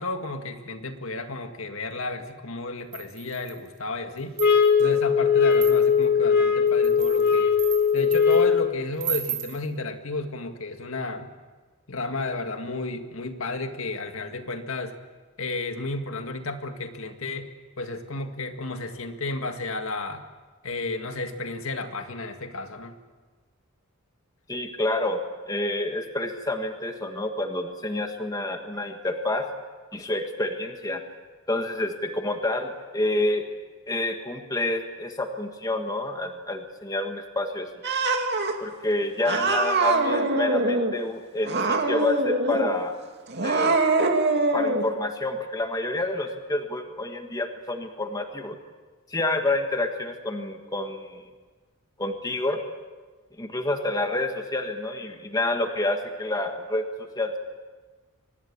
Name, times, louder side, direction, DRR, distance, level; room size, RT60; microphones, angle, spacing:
voice 1, 0.0-4.4 4.8-7.6 7.9-11.3 11.9-14.9 15.4-17.5 17.8-20.2 20.6-22.9, left 2 dB, 70° left, 6 dB, 2.0 m, -32 dB
sound 1, 2.9-3.7 4.2-4.9 5.5-6.1 6.7-8.4 9.0-9.6, right 9 dB, 35° right, 4.1 m, -34 dB
sound 2, 4.4-8.8, left 6 dB, 45° left, 2.3 m, -20 dB
voice 2, 24.5-25.2 25.4-29.5 29.9-31.0 31.5-33.4 33.9-37.7 38.6-42.9 43.4-43.8 44.5-48.6 49.1-51.2 52.0-52.6 53.4-56.8 57.1-57.4, left 2 dB, 15° left, 5 dB, 1.7 m, -28 dB
Cat, 37.8-38.5 39.3-40.9 41.4-42.7 43.3-44.8, right 2 dB, 50° right, 2.5 m, -23 dB
24.5 x 19.5 x 8.6 m, 1.3 s
head